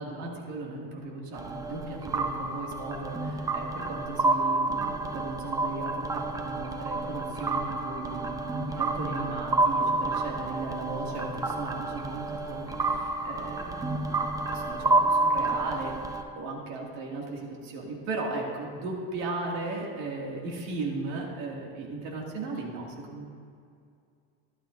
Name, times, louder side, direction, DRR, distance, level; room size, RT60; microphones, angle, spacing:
voice 1, 0.0-14.2 14.5-23.2, right 3 dB, 65° right, -1 dB, 2.1 m, -36 dB
sound 1, 1.4-16.2, right 2 dB, 10° right, 0.6 m, -29 dB
12.5 x 12.0 x 2.5 m, 2.3 s
cardioid pair, 130°, 32 cm